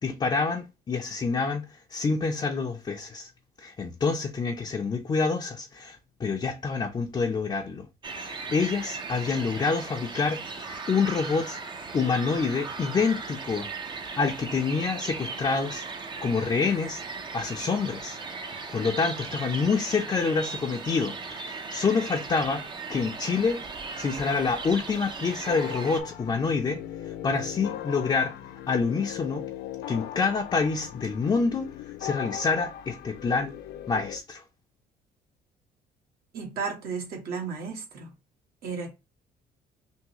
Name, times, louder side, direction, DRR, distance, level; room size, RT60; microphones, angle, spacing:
voice 1, 0.0-3.3 3.6-7.9 8.2-11.6 11.9-13.7 14.2-15.9 16.2-17.0 17.3-18.2 18.7-22.6 22.9-23.6 24.0-26.8 27.2-28.3 28.7-29.5 29.9-31.7 32.0-33.5 33.9-34.4, left 4 dB, 25° left, 0.6 m, -27 dB
sound 1, 8.0-26.0, right 4 dB, 30° right, 0.6 m, -37 dB
sound 2, 25.5-34.2, left 11 dB, 80° left, 0.4 m, -39 dB
voice 2, 36.3-38.1 38.6-38.9, right 5 dB, 65° right, 1.4 m, -34 dB
3.6 x 2.5 x 2.9 m
cardioid pair, 110°, 17 cm